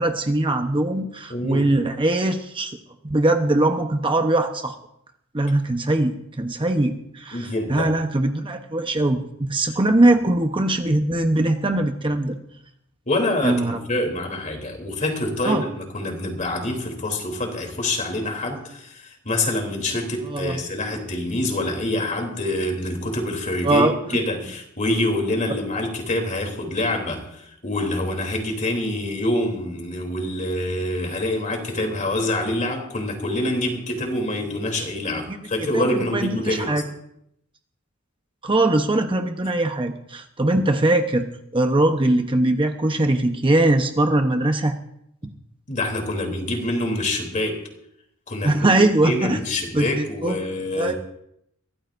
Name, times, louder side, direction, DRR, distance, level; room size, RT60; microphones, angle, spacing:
voice 1, 0.0-2.8 3.0-4.7 5.3-12.4 13.4-13.8 15.4-15.6 20.2-20.6 23.6-23.9 35.3-35.4 35.7-36.8 38.4-41.3 41.5-44.7 48.4-49.4 49.7-50.9, right 2 dB, 25° right, 5 dB, 0.9 m, -21 dB
voice 2, 1.3-1.7 7.3-7.9 13.1-23.9 24.1-36.8 45.7-47.6 48.3-48.7 49.0-50.9, left 1 dB, 35° left, 3 dB, 3.3 m, -26 dB
23.5 x 16.5 x 2.6 m, 0.75 s
head